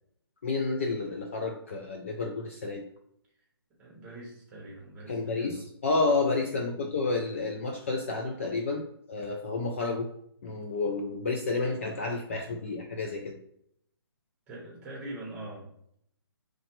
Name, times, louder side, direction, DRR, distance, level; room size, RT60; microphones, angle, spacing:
voice 1, 0.4-2.9 5.1-10.1 10.4-13.4, left 3 dB, 30° left, 3 dB, 0.4 m, -30 dB
voice 2, 3.8-5.6 6.8-6.9 14.5-15.7, right 1 dB, 10° right, -4 dB, 1.0 m, -43 dB
4.9 x 3.2 x 3.0 m, 0.71 s
hypercardioid pair, 165°, 13 cm